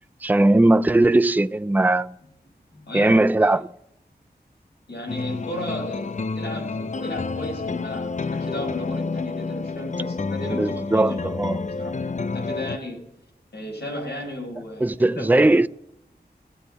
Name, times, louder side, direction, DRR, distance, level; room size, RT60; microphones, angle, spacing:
voice 1, 0.2-2.2 2.9-3.7 10.5-11.6 14.8-15.7, right 2 dB, 10° right, 0.4 m, -19 dB
voice 2, 2.7-3.2 4.9-13.0 13.5-15.4, left 1 dB, 90° left, 6.2 m, -34 dB
sound 1, 5.1-12.8, left 4 dB, 45° left, 0.6 m, -29 dB
19.0 x 8.2 x 6.7 m
wide cardioid pair, 50°, 17 cm